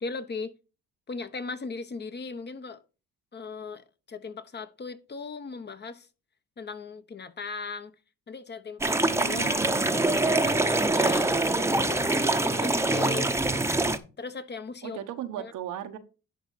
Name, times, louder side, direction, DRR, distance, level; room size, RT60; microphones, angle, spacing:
voice 1, 0.0-0.5 1.1-2.8 3.3-6.1 6.6-7.9 8.3-9.6 10.1-13.3 14.2-15.0 15.4-15.5, left 4 dB, 35° left, 1.0 m, -38 dB
sound 1, 8.8-14.0, right 2 dB, 10° right, 0.8 m, -24 dB
voice 2, 9.1-10.0 14.8-16.0, right 11 dB, 85° right, 1.2 m, -37 dB
11.0 x 4.0 x 5.6 m
cardioid pair, 90°, 30 cm